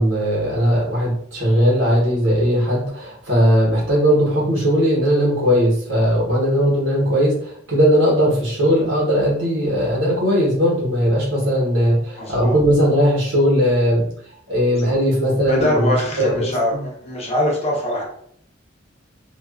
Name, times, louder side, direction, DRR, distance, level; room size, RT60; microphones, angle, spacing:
voice 1, 0.0-14.0 14.5-16.8, equal, 80° right, -5 dB, 1.0 m, -18 dB
voice 2, 12.2-12.6 15.4-18.0, left 1 dB, 35° left, -3 dB, 0.7 m, -22 dB
2.3 x 2.3 x 2.3 m, 0.64 s
head